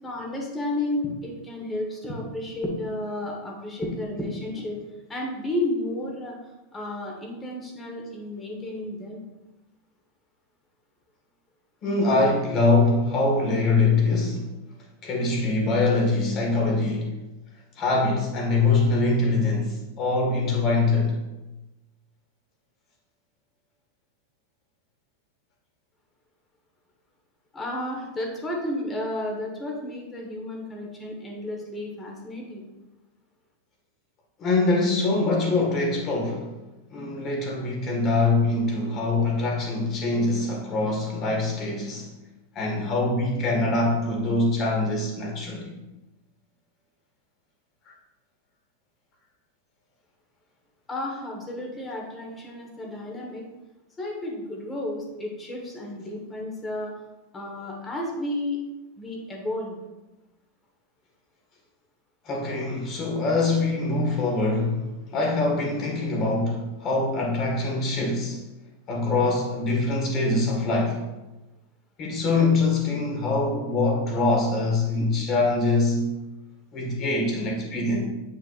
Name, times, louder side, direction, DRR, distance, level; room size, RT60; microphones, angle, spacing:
voice 1, 0.0-4.8 5.1-6.4 6.7-9.2 27.5-32.6 50.9-53.4 54.0-56.9 57.3-58.6 59.0-59.8, left 1 dB, 15° left, 0 dB, 1.4 m, -32 dB
voice 2, 11.8-14.5 15.0-17.1 17.8-21.2 34.4-36.5 36.9-42.1 42.6-45.7 62.2-68.4 68.9-71.0 72.0-76.1 76.7-78.0, left 3 dB, 30° left, -1 dB, 1.8 m, -24 dB
9.1 x 5.6 x 2.5 m, 1.0 s
supercardioid pair, 160°, 0 cm